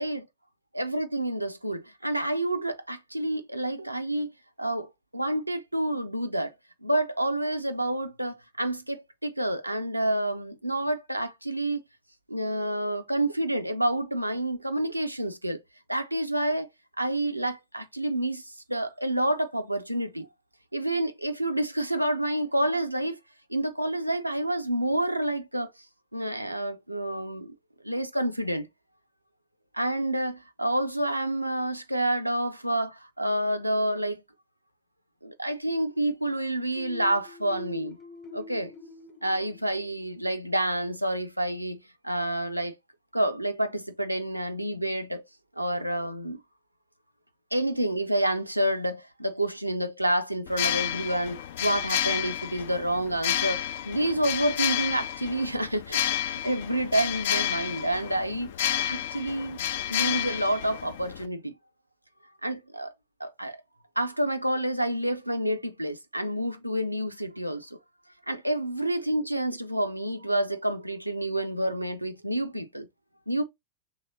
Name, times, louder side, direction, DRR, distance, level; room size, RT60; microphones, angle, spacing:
voice 1, 0.7-4.3 4.6-6.5 6.8-11.8 12.3-15.6 15.9-16.7 17.0-20.3 20.7-23.2 23.5-25.7 26.1-27.5 27.8-28.7 29.7-34.2 35.2-38.0 38.3-38.7 39.2-41.8 42.0-42.8 43.1-45.2 45.6-46.4 47.5-58.5 58.8-59.6 59.9-61.5 62.4-62.9 63.2-63.6 64.0-67.8 68.3-72.9 73.3-73.4, right 1 dB, 90° right, 0.5 m, -28 dB
sound 1, 36.7-40.4, left 3 dB, 30° left, 1.0 m, -45 dB
sound 2, 50.5-61.3, left 11 dB, 55° left, 0.4 m, -30 dB
3.2 x 2.9 x 4.0 m
figure-of-eight pair, 90°, 0 cm